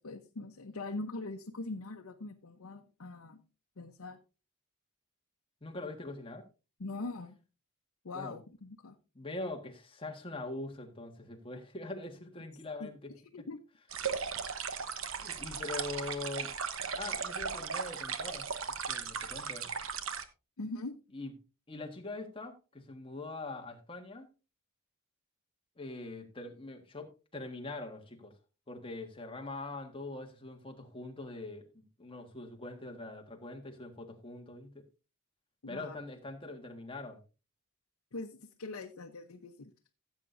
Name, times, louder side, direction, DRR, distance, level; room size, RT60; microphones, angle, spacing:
voice 1, 0.0-3.4 3.8-4.2 6.8-7.4 8.0-9.0 12.8-13.6 20.6-21.0 35.6-36.0 38.1-39.7, left 2 dB, 85° left, 0.8 m, -42 dB
voice 2, 5.6-6.4 8.1-8.4 9.1-13.1 14.9-16.5 16.9-18.5 18.9-19.7 21.1-21.3 21.7-24.3 25.8-28.3 28.7-34.8 35.7-37.2, left 2 dB, 25° left, 1.6 m, -43 dB
sound 1, 13.9-20.2, right 6 dB, 65° right, 1.0 m, -37 dB
16.0 x 8.2 x 2.6 m
head